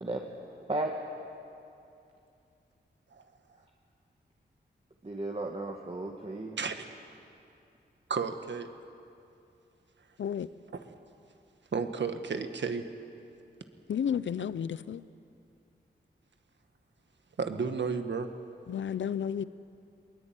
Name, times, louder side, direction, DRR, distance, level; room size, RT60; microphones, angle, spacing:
voice 1, 0.0-0.9 5.0-6.6, right 2 dB, 30° right, 2.2 m, -35 dB
voice 2, 8.1-8.7 10.7-10.8 11.7-12.9 17.4-18.3, right 5 dB, 70° right, 1.7 m, -32 dB
voice 3, 13.9-15.0 18.7-19.4, left 8 dB, 85° left, 0.6 m, -32 dB
21.5 x 21.0 x 9.1 m
cardioid pair, 55°, 19 cm